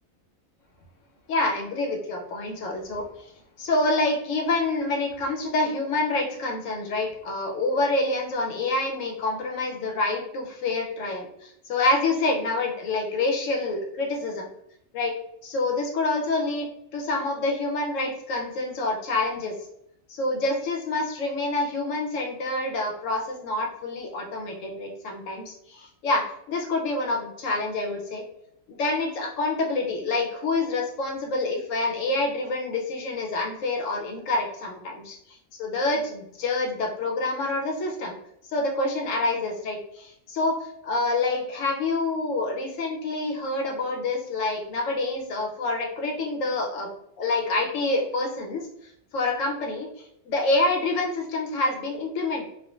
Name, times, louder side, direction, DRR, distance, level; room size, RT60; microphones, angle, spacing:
voice 1, 1.3-3.0 3.6-14.5 14.9-15.1 15.4-16.7 16.9-19.5 20.1-28.2 28.8-35.2 35.6-38.1 38.5-46.9 47.2-48.6 49.1-49.9 50.3-52.5, left 2 dB, 85° left, 1 dB, 1.0 m, -27 dB
3.5 x 2.2 x 2.4 m, 0.74 s
omnidirectional pair, 1.3 m